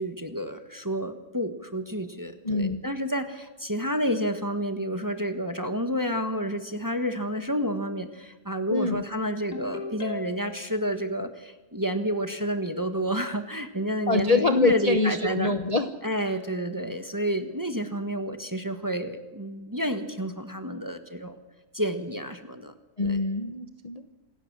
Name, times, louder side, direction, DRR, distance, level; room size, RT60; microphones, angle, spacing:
voice 1, 0.0-15.6 16.0-21.4 21.7-22.7 23.0-23.2, equal, 15° right, 7 dB, 1.3 m, -30 dB
voice 2, 2.4-2.8 8.7-9.0 14.1-15.9 23.0-24.0, left 3 dB, 30° left, 7 dB, 0.9 m, -25 dB
Ringtone, 9.5-10.7, left 3 dB, 90° left, 3.8 m, -37 dB
27.0 x 15.5 x 7.5 m, 1.1 s
omnidirectional pair, 1.7 m